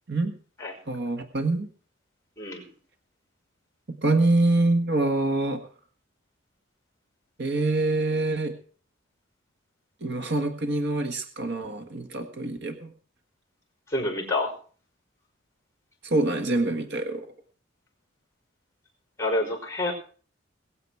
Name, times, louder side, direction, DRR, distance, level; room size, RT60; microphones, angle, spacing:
voice 1, 0.9-1.7 4.0-5.6 7.4-8.5 10.0-12.9 16.0-17.3, right 2 dB, 60° right, 6 dB, 1.5 m, -25 dB
voice 2, 2.4-2.7 13.9-14.5 19.2-19.9, left 2 dB, 15° left, 2 dB, 4.9 m, -27 dB
22.0 x 8.0 x 4.7 m, 0.42 s
head